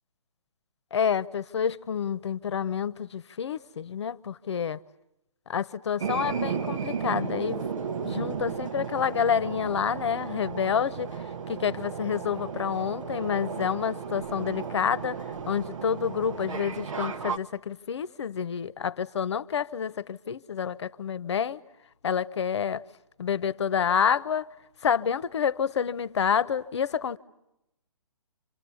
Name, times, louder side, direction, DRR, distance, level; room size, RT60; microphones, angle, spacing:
voice 1, 0.9-4.8 5.5-7.6 8.0-11.1 11.5-15.2 15.5-21.6 22.0-22.8 23.2-24.5 24.8-27.2, left 7 dB, 50° left, 1.0 m, -28 dB
sound 1, 6.0-17.4, right 6 dB, 65° right, 1.1 m, -34 dB
30.0 x 27.5 x 7.1 m
hypercardioid pair, 155°, 18 cm